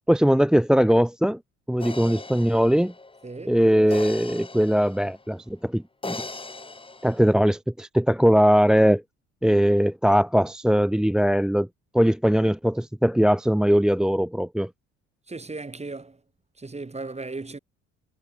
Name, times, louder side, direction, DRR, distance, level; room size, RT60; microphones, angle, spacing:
voice 1, 0.1-1.4 1.7-2.9 3.5-6.2 7.0-9.0 9.4-11.7 11.9-14.7, equal, ahead, 1.0 m, -20 dB
sound 1, 1.8-5.3 6.0-7.3, left 3 dB, 15° left, 2.0 m, -38 dB
voice 2, 3.2-3.9 15.3-16.2 16.6-17.6, right 3 dB, 15° right, 4.6 m, -36 dB
figure-of-eight pair, 55°, 37 cm